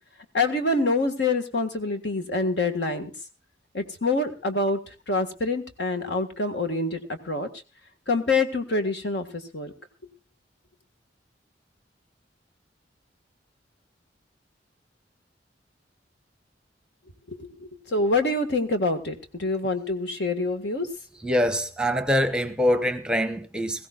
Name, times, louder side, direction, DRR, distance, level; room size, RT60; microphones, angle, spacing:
voice 1, 0.3-3.1 3.7-4.8 5.1-7.5 8.1-9.7 17.3-20.9, left 2 dB, 70° left, 1.7 m, -26 dB
voice 2, 21.2-23.9, equal, 5° right, 0.9 m, -24 dB
21.0 x 16.0 x 2.5 m
head